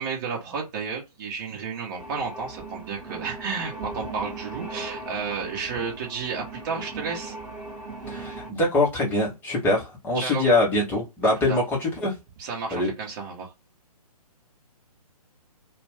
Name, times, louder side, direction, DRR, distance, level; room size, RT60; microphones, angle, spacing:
voice 1, 0.0-7.4 10.1-10.5 11.5-11.6 12.4-13.5, right 5 dB, 30° right, 0.8 m, -32 dB
sound 1, 2.0-8.5, right 3 dB, 10° right, 1.1 m, -38 dB
voice 2, 8.1-12.1 12.7-12.9, left 2 dB, 10° left, 0.7 m, -23 dB
2.4 x 2.2 x 3.3 m
figure-of-eight pair, 135°, 20 cm